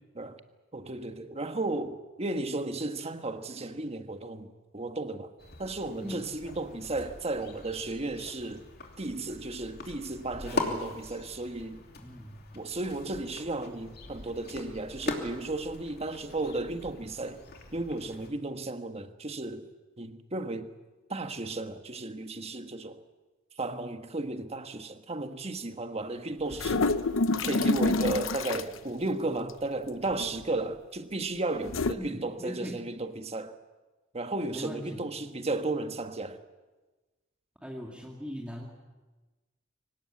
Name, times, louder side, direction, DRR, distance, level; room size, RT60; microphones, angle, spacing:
voice 1, 0.7-5.3 5.6-8.6 9.0-11.8 12.5-17.4 17.7-19.7 20.0-20.7 21.1-23.0 23.6-26.8 27.3-33.6 34.1-36.4, right 2 dB, 35° right, 1.4 m, -34 dB
sound 1, 5.4-18.3, left 2 dB, 55° left, 2.9 m, -41 dB
voice 2, 10.3-10.9 12.0-12.5 32.0-32.9 34.5-35.0 37.6-38.7, equal, 5° right, 2.3 m, -40 dB
sound 2, 26.5-28.8 30.0-30.4 31.6-31.9, left 3 dB, 90° left, 0.8 m, -27 dB
23.5 x 18.5 x 8.5 m
head